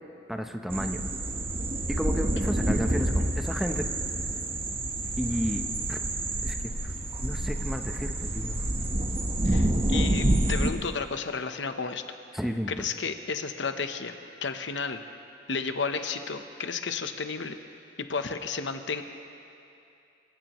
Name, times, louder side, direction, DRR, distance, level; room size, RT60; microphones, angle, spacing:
voice 1, 0.3-1.0 1.9-3.9 5.2-6.0 6.4-6.5 6.8-6.9 7.2-8.6 12.3-12.8, equal, ahead, 5 dB, 0.8 m, -32 dB
sound 1, 0.7-10.7, right 1 dB, 30° right, 1.1 m, -28 dB
voice 2, 9.4-12.0 12.7-15.0 15.5-17.6 18.0-19.0, left 5 dB, 75° left, 8 dB, 0.9 m, -32 dB
27.5 x 15.5 x 3.1 m, 2.7 s
head